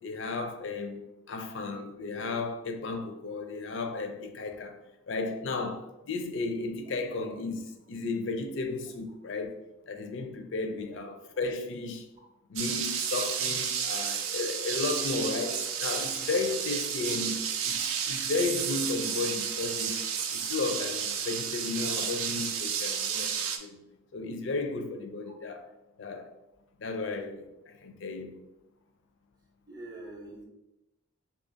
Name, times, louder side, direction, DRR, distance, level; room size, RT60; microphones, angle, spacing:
voice 1, 0.0-4.8 5.1-9.5 9.9-12.1 12.5-20.0 20.3-23.8 24.1-25.7 26.0-26.3 26.8-28.4, left 3 dB, 60° left, 0.4 m, -34 dB
voice 2, 10.7-11.0 17.8-17.9 25.3-25.4 29.7-30.4, right 2 dB, 20° right, 0.6 m, -45 dB
sound 1, 12.6-23.6, right 7 dB, 80° right, 0.4 m, -32 dB
2.7 x 2.4 x 3.8 m
head